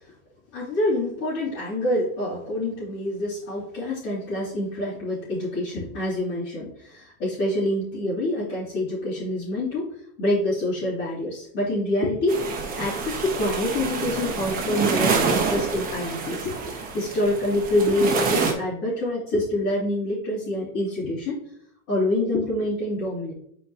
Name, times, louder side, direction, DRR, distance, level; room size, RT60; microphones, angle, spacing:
voice 1, 0.5-12.4 12.8-21.4 21.9-23.3, left 1 dB, 40° left, -11 dB, 3.1 m, -26 dB
sound 1, 12.3-18.5, right 5 dB, 20° right, 1.1 m, -27 dB
9.9 x 4.7 x 2.9 m, 0.70 s
supercardioid pair, 160°, 42 cm